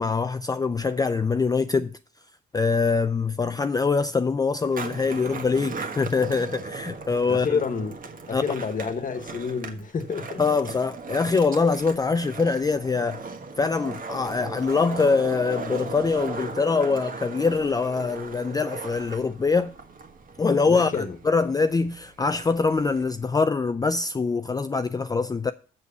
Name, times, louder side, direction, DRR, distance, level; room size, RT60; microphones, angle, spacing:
voice 1, 0.0-1.9 2.5-7.6 8.3-8.4 10.4-13.3 13.6-19.7 20.4-25.5, left 4 dB, 20° left, 0.4 m, -24 dB
Skateboard, 4.6-23.3, right 4 dB, 45° right, 1.4 m, -38 dB
voice 2, 7.3-8.0 8.3-10.4 20.7-21.2, left 5 dB, 40° left, 1.4 m, -29 dB
7.1 x 6.4 x 6.8 m
cardioid pair, 90°, 20 cm